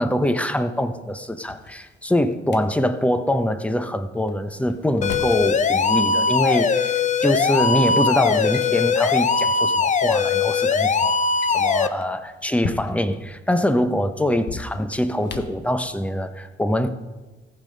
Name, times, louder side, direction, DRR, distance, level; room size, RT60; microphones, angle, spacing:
voice 1, 0.0-11.1 11.5-16.9, left 1 dB, 5° left, 10 dB, 0.9 m, -24 dB
Drawer open or close, 1.2-2.6 4.3-5.4 6.7-6.8 7.6-7.9 8.2-8.7 9.0-9.3 9.7-9.8 10.0-10.2 11.2-13.2 14.3-15.7, left 5 dB, 60° left, 1.1 m, -36 dB
sound 1, 5.0-11.9, left 5 dB, 40° left, 0.6 m, -20 dB
14.5 x 7.6 x 5.3 m, 1.2 s
cardioid pair, 90°, 20 cm